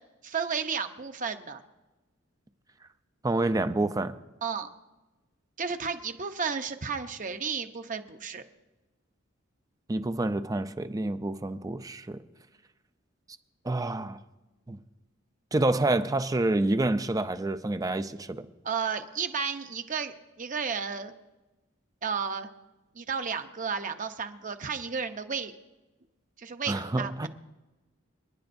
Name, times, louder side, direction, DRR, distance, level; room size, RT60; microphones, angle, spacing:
voice 1, 0.2-1.6 4.4-4.7 5.6-8.4 18.6-21.1 22.0-22.5 22.9-25.5 26.4-27.3, right 6 dB, 40° right, 0.8 m, -33 dB
voice 2, 3.2-4.1 9.9-12.2 13.6-14.2 14.7-14.8 15.5-18.4 26.7-27.3, right 2 dB, 20° right, 0.5 m, -28 dB
28.5 x 10.5 x 2.6 m
head